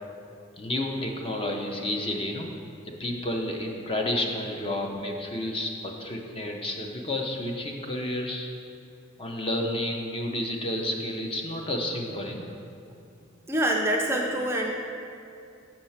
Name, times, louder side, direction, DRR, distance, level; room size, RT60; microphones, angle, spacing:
voice 1, 0.6-2.5 2.8-8.5 9.2-12.5, left 1 dB, 25° left, 2 dB, 0.6 m, -31 dB
voice 2, 13.5-14.7, right 1 dB, 15° right, 0 dB, 0.4 m, -25 dB
6.4 x 4.3 x 5.7 m, 2.5 s
head